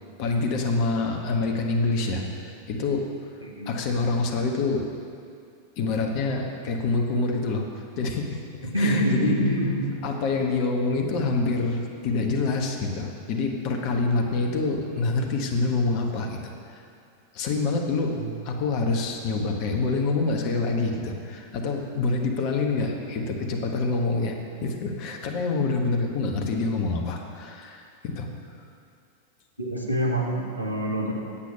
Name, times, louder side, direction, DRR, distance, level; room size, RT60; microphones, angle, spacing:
voice 1, 0.2-3.1 3.7-4.9 5.8-8.4 8.8-9.4 10.0-16.8 17.3-18.2 18.4-28.3, left 3 dB, 45° left, 2 dB, 1.2 m, -26 dB
voice 2, 3.4-3.8 8.7-9.9 18.1-18.3 29.6-31.1, right 1 dB, 85° right, -1 dB, 1.4 m, -26 dB
8.7 x 8.3 x 5.6 m, 2.5 s
figure-of-eight pair, 90°, 0 cm